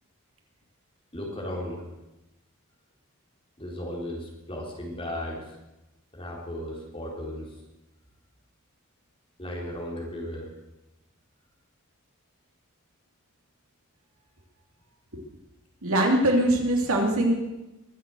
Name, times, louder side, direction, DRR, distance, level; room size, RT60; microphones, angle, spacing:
voice 1, 1.1-1.9 3.6-5.6 6.1-7.5 9.4-10.5, left 1 dB, 25° left, -2 dB, 3.9 m, -35 dB
voice 2, 15.8-17.3, right 1 dB, 70° right, 2 dB, 2.9 m, -22 dB
22.5 x 7.7 x 7.9 m, 0.97 s
head